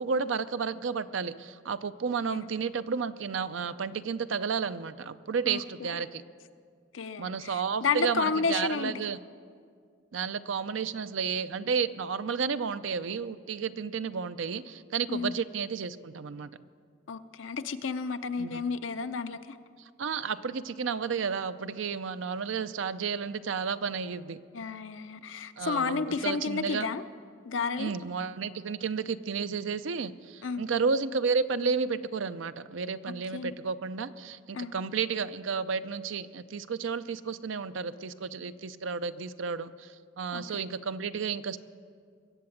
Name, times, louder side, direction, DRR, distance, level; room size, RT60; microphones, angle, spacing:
voice 1, 0.0-6.2 7.2-9.2 10.1-16.6 18.4-18.6 20.0-24.4 25.6-26.9 27.8-41.6, right 5 dB, 80° right, 13 dB, 0.5 m, -32 dB
voice 2, 5.5-5.9 6.9-8.9 15.1-15.3 17.1-19.6 24.5-27.0 27.4-27.9 30.4-30.6 33.3-33.5 34.5-34.7 40.3-40.6, left 5 dB, 80° left, 10 dB, 0.6 m, -32 dB
22.0 x 7.8 x 7.2 m, 2.1 s
head